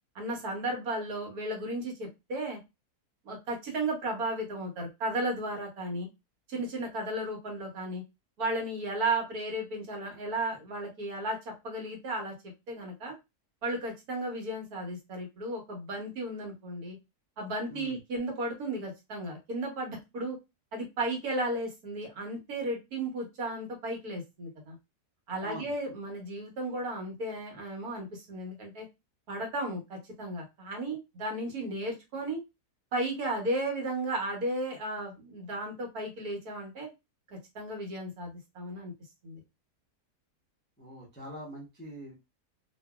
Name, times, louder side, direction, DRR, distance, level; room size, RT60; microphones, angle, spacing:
voice 1, 0.1-2.6 3.2-6.1 6.5-8.0 8.4-11.4 11.6-12.3 12.7-13.1 13.6-17.0 17.4-20.4 20.7-24.8 25.3-28.8 29.3-32.4 32.9-36.9 37.5-38.9 39.2-39.4, right 1 dB, 65° right, 0 dB, 1.4 m, -34 dB
voice 2, 25.3-25.7 40.8-42.1, right 1 dB, 15° left, -3 dB, 0.3 m, -43 dB
2.8 x 2.5 x 2.3 m, 0.23 s
omnidirectional pair, 1.8 m